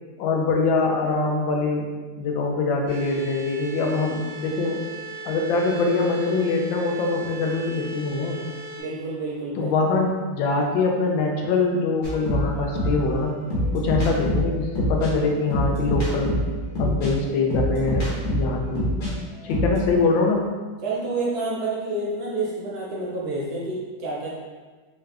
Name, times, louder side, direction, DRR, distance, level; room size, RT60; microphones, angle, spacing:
voice 1, 0.2-1.9 2.2-4.8 5.2-8.4 9.6-13.3 13.7-16.3 16.8-18.9 19.4-20.5, left 3 dB, 90° left, 1 dB, 1.3 m, -23 dB
sound 1, 2.9-8.8, right 2 dB, 10° right, 1.1 m, -38 dB
voice 2, 8.7-9.7 20.8-24.3, right 2 dB, 65° right, -5 dB, 1.1 m, -29 dB
sound 2, 12.0-19.1 19.4-19.9, equal, 55° left, 1.4 m, -25 dB
3.6 x 2.3 x 3.2 m, 1.4 s
omnidirectional pair, 2.0 m